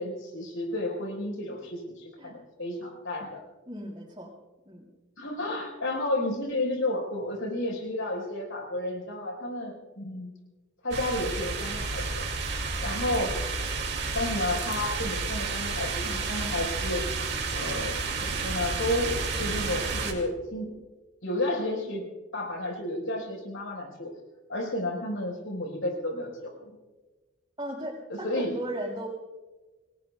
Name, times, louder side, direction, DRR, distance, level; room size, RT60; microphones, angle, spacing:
voice 1, 0.0-3.4 5.2-10.3 10.8-12.2 12.8-13.3 14.1-17.0 17.5-20.7 21.2-22.0 22.3-24.1 24.5-26.7 28.1-28.5, left 1 dB, 70° left, 1 dB, 4.9 m, -32 dB
voice 2, 3.7-4.3 4.7-4.9 27.6-29.1, right 1 dB, 20° right, -1 dB, 5.5 m, -36 dB
sound 1, 10.9-20.1, right 4 dB, 55° right, 2.5 m, -31 dB
30.0 x 20.0 x 2.4 m, 1.2 s
head